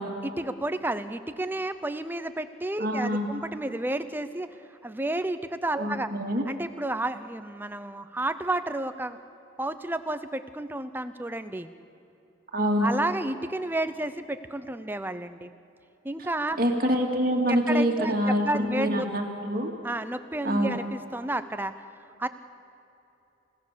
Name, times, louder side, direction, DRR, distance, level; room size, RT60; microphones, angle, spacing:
voice 1, 0.2-4.5 4.8-6.1 6.4-9.2 9.6-11.7 12.8-15.5 16.0-16.6 17.5-19.1 19.8-21.9 22.2-22.3, right 1 dB, 10° right, 11 dB, 0.6 m, -31 dB
voice 2, 2.8-3.3 5.8-6.4 12.5-12.9 16.6-18.5 18.7-19.7 20.4-20.8, equal, 45° right, 2 dB, 2.4 m, -25 dB
29.0 x 17.0 x 6.8 m, 2.9 s
head